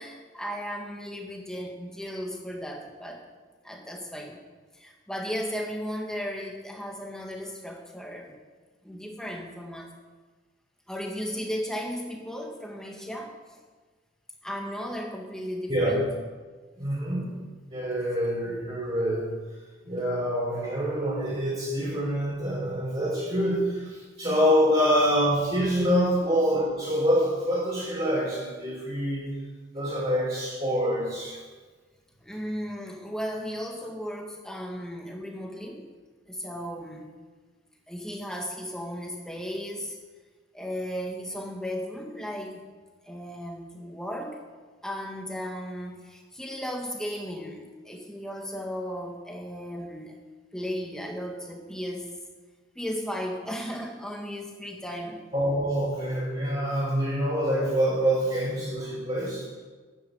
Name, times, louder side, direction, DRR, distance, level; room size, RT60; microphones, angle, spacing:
voice 1, 0.0-3.2 3.6-4.4 4.7-8.3 8.8-9.9 10.9-13.6 14.4-16.1 32.2-35.8 36.3-37.1 37.9-40.0 40.5-42.6 43.0-44.4 44.8-50.2 50.5-52.1 52.8-55.2, equal, 5° left, 1 dB, 1.8 m, -35 dB
voice 2, 15.7-16.0 16.8-17.3 17.7-19.3 19.9-29.3 29.7-31.4 55.3-59.5, equal, 30° right, -9 dB, 4.2 m, -26 dB
11.5 x 10.5 x 7.9 m, 1.4 s
head